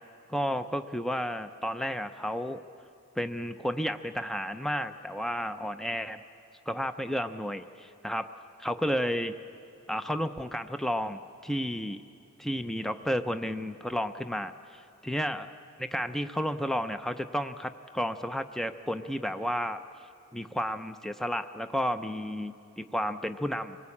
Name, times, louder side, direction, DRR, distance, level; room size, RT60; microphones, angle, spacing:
voice 1, 0.3-2.6 3.2-6.2 6.7-8.3 8.6-9.4 9.9-12.0 12.4-19.8 20.3-23.8, equal, ahead, 9 dB, 0.5 m, -32 dB
25.0 x 18.5 x 8.5 m, 2.6 s
head